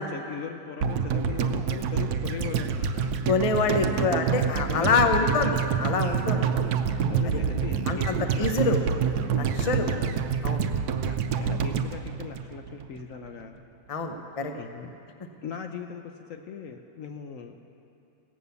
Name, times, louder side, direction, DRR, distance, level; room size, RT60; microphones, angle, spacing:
voice 1, 0.0-3.2 3.6-3.9 4.7-5.3 6.4-6.6 7.1-8.8 9.6-10.2 11.0-13.6 14.5-14.9 15.4-17.5, left 6 dB, 65° left, 5 dB, 0.9 m, -39 dB
sound 1, 0.8-13.0 13.3-13.4, right 6 dB, 70° right, 1.1 m, -27 dB
voice 2, 3.3-6.4 7.2-7.4 7.9-8.8 9.4-9.9 10.4-10.6 13.9-14.5, left 3 dB, 40° left, 5 dB, 0.5 m, -26 dB
17.0 x 8.3 x 6.9 m, 2.7 s
omnidirectional pair, 1.8 m